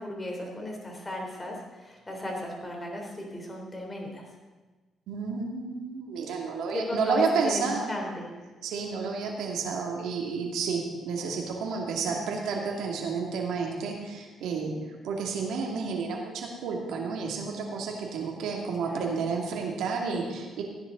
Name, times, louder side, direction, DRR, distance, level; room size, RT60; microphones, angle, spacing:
voice 1, 0.0-4.2 6.7-8.3 12.0-12.3 18.8-19.0, left 1 dB, 20° left, 0 dB, 3.8 m, -35 dB
voice 2, 5.1-7.9 8.6-14.8 15.0-20.6, right 5 dB, 80° right, 0 dB, 2.5 m, -31 dB
16.5 x 10.5 x 4.0 m, 1.3 s
cardioid pair, 90°, 0 cm